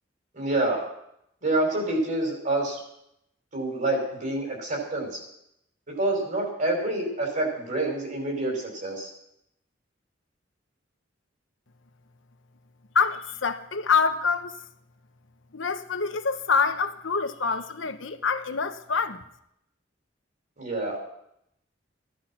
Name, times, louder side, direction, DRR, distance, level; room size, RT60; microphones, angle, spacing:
voice 1, 0.3-0.8 1.4-2.8 3.5-5.2 6.0-9.1 20.6-21.0, right 2 dB, 45° right, 5.8 m, -27 dB
voice 2, 12.9-14.6 15.5-19.2, left 5 dB, 85° left, 1.1 m, -26 dB
16.5 x 12.0 x 6.0 m
head